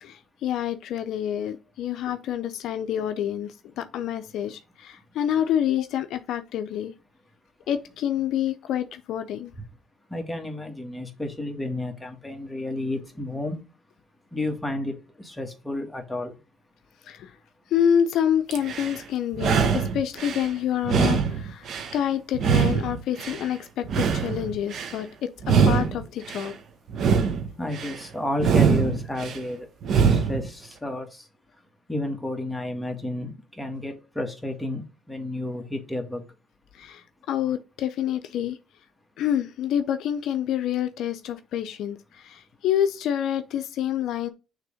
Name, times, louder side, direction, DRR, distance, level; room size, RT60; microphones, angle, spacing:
voice 1, 0.0-6.9 7.7-9.5 17.0-17.4 17.7-21.7 21.9-25.1 25.5-26.5 36.7-38.6 39.2-44.3, left 9 dB, 70° left, 0.5 m, -27 dB
voice 2, 10.1-13.6 14.3-16.3 27.6-29.7 30.0-31.1 31.9-34.8 35.1-36.2, left 1 dB, 5° left, 1.8 m, -31 dB
sound 1, 18.5-19.0 19.3-20.5 20.8-22.0 22.3-23.5 23.8-25.0 25.4-26.5 26.9-28.0 28.4-29.4 29.8-30.5, right 6 dB, 55° right, 1.1 m, -23 dB
6.5 x 3.4 x 4.9 m
cardioid pair, 95°, 0 cm